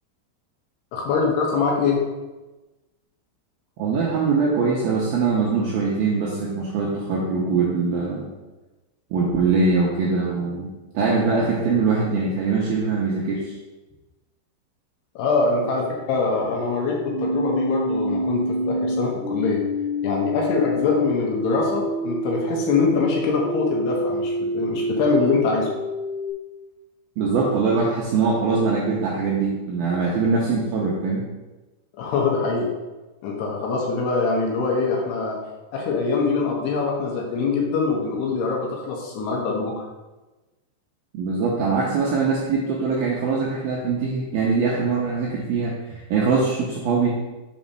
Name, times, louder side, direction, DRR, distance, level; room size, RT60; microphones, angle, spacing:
voice 1, 0.9-2.0 15.2-19.6 20.0-25.7 32.0-32.7 33.2-35.4 35.7-39.8, left 4 dB, 70° left, -1 dB, 2.8 m, -23 dB
voice 2, 3.8-8.3 9.1-10.7 10.9-13.5 27.2-31.2 41.1-47.2, right 4 dB, 80° right, -3 dB, 2.2 m, -22 dB
sound 1, 17.1-26.3, equal, 40° left, 1.9 m, -27 dB
7.3 x 4.1 x 5.4 m, 1.1 s
omnidirectional pair, 5.4 m